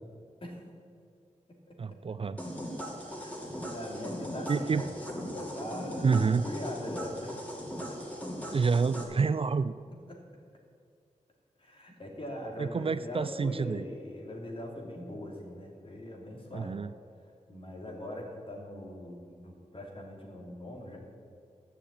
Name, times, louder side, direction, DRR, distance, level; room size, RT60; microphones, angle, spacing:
voice 1, 1.8-2.4 4.5-4.8 6.0-6.5 8.5-9.7 12.6-13.8 16.5-16.9, right 5 dB, 45° right, 13 dB, 0.4 m, -28 dB
sound 1, 2.4-9.0, equal, 10° left, 2.8 m, -39 dB
voice 2, 3.0-4.9 5.3-7.4 7.9-8.0 10.1-10.2 11.6-16.8 17.5-21.0, left 1 dB, 40° left, 0 dB, 3.0 m, -41 dB
13.5 x 6.7 x 8.7 m, 2.3 s
wide cardioid pair, 90°, 13 cm